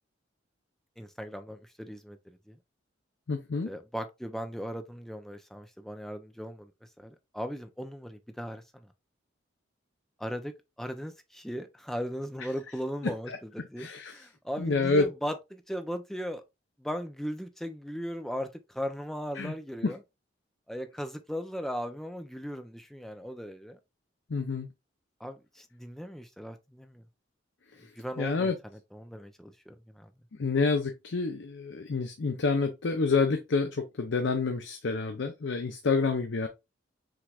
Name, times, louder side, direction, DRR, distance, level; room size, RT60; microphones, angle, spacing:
voice 1, 1.0-2.6 3.6-6.7 7.0-8.9 10.2-10.5 10.8-16.4 16.8-20.0 20.7-23.8 25.2-27.0 28.0-28.5 28.9-30.1, equal, ahead, 0.5 m, -38 dB
voice 2, 3.3-3.7 13.0-14.3 14.6-15.1 19.4-19.5 19.8-19.9 24.3-24.7 27.7-27.9 28.2-28.6 30.4-36.5, left 4 dB, 65° left, 0.6 m, -28 dB
6.0 x 3.2 x 2.4 m
head